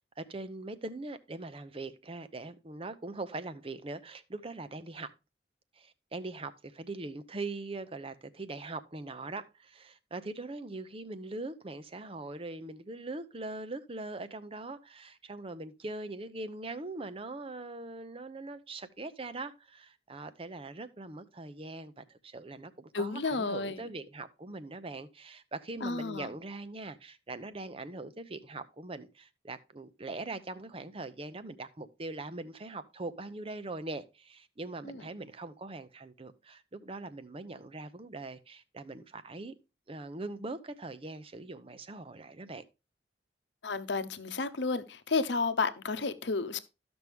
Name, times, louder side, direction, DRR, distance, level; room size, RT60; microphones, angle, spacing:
voice 1, 0.2-5.1 5.8-39.5 39.9-42.6, right 2 dB, 30° right, 0.7 m, -41 dB
voice 2, 22.9-23.8 25.8-26.3 34.8-35.0 43.6-46.6, left 4 dB, 80° left, 0.8 m, -32 dB
13.5 x 6.1 x 3.5 m
head